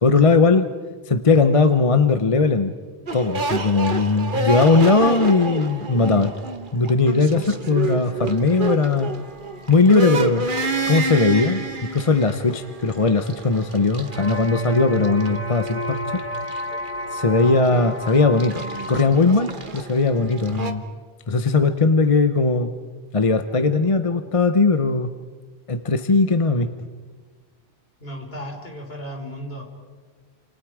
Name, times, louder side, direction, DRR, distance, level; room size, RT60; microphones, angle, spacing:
voice 1, 0.0-0.6 1.1-2.7 3.1-6.3 6.7-9.1 9.7-10.5 10.9-11.6 11.9-16.2 17.1-20.8 21.3-22.7 23.1-25.1 25.7-26.7, left 3 dB, 35° left, 9 dB, 0.9 m, -19 dB
sound 1, 3.1-20.7, right 3 dB, 50° right, 1.5 m, -30 dB
sound 2, 14.0-19.1, equal, 10° left, 2.6 m, -31 dB
voice 2, 28.0-29.6, equal, 65° left, 1 dB, 4.8 m, -35 dB
30.0 x 28.0 x 5.0 m, 1.5 s
omnidirectional pair, 1.1 m